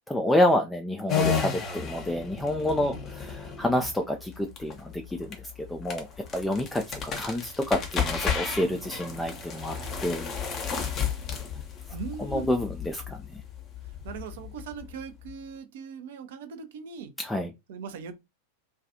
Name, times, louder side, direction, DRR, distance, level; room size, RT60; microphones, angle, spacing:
voice 1, 0.1-6.1 6.3-9.8 10.0-10.3 12.2-13.4 17.2-17.5, left 1 dB, 5° left, 0.3 m, -28 dB
sound 1, 1.1-15.3, left 7 dB, 30° left, 0.7 m, -33 dB
voice 2, 8.2-10.2 11.9-12.5 14.0-17.1 17.7-18.1, right 6 dB, 55° right, 0.5 m, -41 dB
2.3 x 2.2 x 2.7 m
figure-of-eight pair, 90°, 0 cm